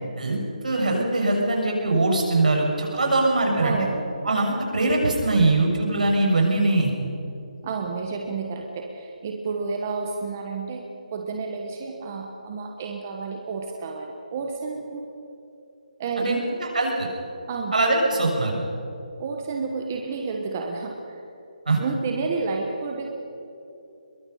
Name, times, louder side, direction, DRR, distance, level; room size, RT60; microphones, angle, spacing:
voice 1, 0.6-3.8 4.2-6.9 16.2-17.1 17.7-18.6 21.7-21.8, right 2 dB, 70° right, 0 dB, 6.4 m, -22 dB
voice 2, 3.6-4.0 7.6-10.8 11.1-15.1 16.0-16.5 17.5-17.7 19.2-21.2 21.8-23.1, right 4 dB, 20° right, 2 dB, 1.0 m, -30 dB
22.0 x 22.0 x 5.6 m, 2.8 s
hypercardioid pair, 180°, 4 cm